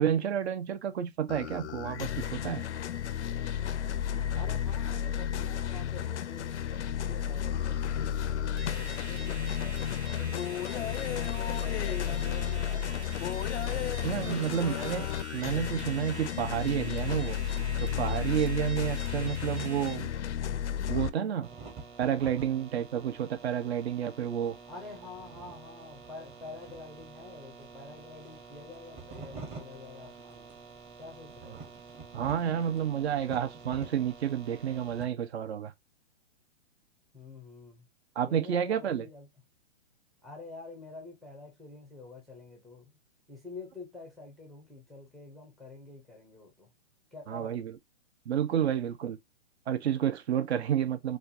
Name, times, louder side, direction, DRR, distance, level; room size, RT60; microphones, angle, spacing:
voice 1, 0.0-2.7 14.0-15.1 15.3-17.4 17.8-20.1 20.9-21.5 22.0-24.6 32.1-35.7 38.2-39.1 47.3-47.8 48.3-49.2 49.7-51.2, right 9 dB, 70° right, 0.7 m, -30 dB
sound 1, 1.3-21.1, left 9 dB, 85° left, 0.5 m, -32 dB
voice 2, 4.3-8.1 8.7-13.2 24.7-30.6 31.0-31.6 37.1-37.9 38.3-39.3 40.2-42.9 43.3-46.7 47.1-47.6, left 3 dB, ahead, 0.4 m, -47 dB
sound 2, 8.6-19.9, right 3 dB, 85° right, 1.4 m, -46 dB
sound 3, 21.4-35.1, right 4 dB, 20° right, 0.8 m, -47 dB
4.3 x 2.3 x 2.5 m
hypercardioid pair, 145°, 34 cm